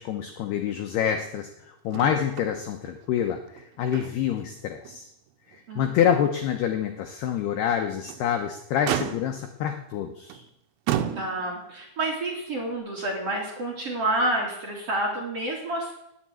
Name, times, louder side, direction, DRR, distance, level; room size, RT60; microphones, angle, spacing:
voice 1, 0.0-1.5 1.8-5.1 5.8-10.4, left 9 dB, 75° left, 4 dB, 2.4 m, -27 dB
Motor vehicle (road), 1.9-2.5 2.8-3.0 3.5-4.4 4.8-5.0 5.5-5.6 7.8-8.3 8.9-9.5 10.3-10.5 10.9-11.7 12.7-12.8, right 11 dB, 80° right, 3.3 m, -31 dB
voice 2, 11.1-15.9, right 1 dB, 35° right, -1 dB, 3.1 m, -29 dB
19.0 x 7.6 x 8.9 m, 0.82 s
omnidirectional pair, 5.9 m